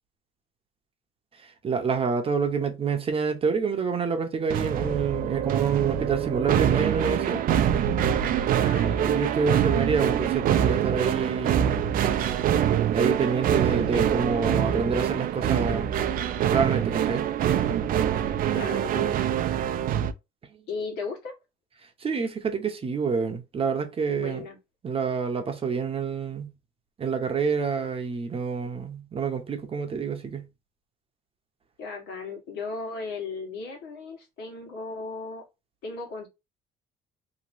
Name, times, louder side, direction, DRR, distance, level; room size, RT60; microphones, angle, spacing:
voice 1, 1.4-7.4 9.0-11.8 12.9-16.0 16.5-17.3 22.0-24.4 24.8-26.5 27.0-30.5, right 5 dB, 35° right, 0.8 m, -27 dB
sound 1, 4.5-20.1, right 10 dB, 55° right, 0.5 m, -25 dB
voice 2, 8.6-9.2 13.9-14.2 18.5-19.1 20.7-21.3 24.1-24.6 31.8-35.4 35.8-36.3, left 4 dB, 80° left, 1.6 m, -36 dB
3.0 x 2.8 x 2.6 m
cardioid pair, 110°, 17 cm